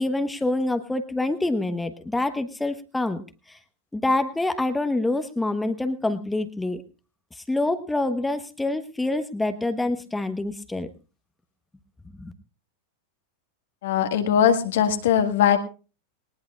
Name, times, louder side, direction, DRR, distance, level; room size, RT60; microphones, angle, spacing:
voice 1, 0.0-3.2 3.5-3.6 3.9-6.8 7.3-10.9 12.2-12.3, left 2 dB, 5° left, 9 dB, 1.2 m, -26 dB
voice 2, 13.8-15.6, left 8 dB, 55° left, 7 dB, 1.8 m, -20 dB
21.0 x 19.5 x 2.4 m, 0.34 s
figure-of-eight pair, 90°, 0 cm